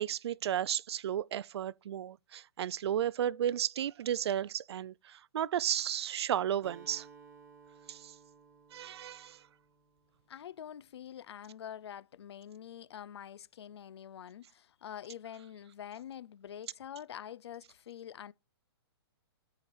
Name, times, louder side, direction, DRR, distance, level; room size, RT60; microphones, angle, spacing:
voice 1, 0.0-7.1 7.9-8.1 8.7-9.4, right 10 dB, 75° right, 0.4 m, -33 dB
Acoustic guitar, 6.6-10.5, right 5 dB, 20° right, 1.5 m, -57 dB
voice 2, 10.3-18.3, left 9 dB, 80° left, 0.5 m, -46 dB
13.5 x 4.9 x 4.2 m
hypercardioid pair, 165°, 14 cm